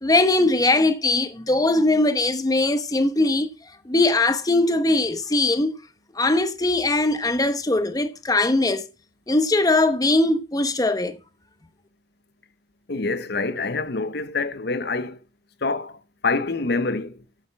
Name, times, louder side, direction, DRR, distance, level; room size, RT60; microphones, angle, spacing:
voice 1, 0.0-3.5 3.8-5.7 6.2-8.9 9.3-11.2, left 2 dB, 20° left, 1.0 m, -20 dB
voice 2, 12.9-15.2 15.6-16.0 16.2-17.2, left 3 dB, 65° left, 0.9 m, -26 dB
10.5 x 7.9 x 5.9 m
head